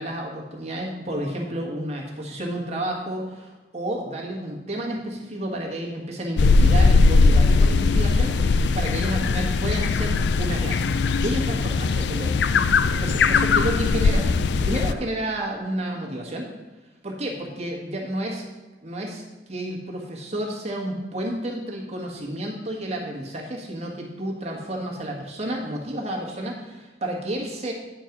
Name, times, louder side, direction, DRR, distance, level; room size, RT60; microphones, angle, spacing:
voice 1, 0.0-10.9 11.2-12.4 12.9-14.2 14.6-16.5 17.0-18.4 18.8-19.2 19.5-27.7, right 1 dB, 35° right, -1 dB, 1.5 m, -31 dB
sound 1, 6.4-14.9, left 4 dB, 70° left, 0.4 m, -19 dB
9.1 x 4.5 x 5.9 m, 1.2 s
head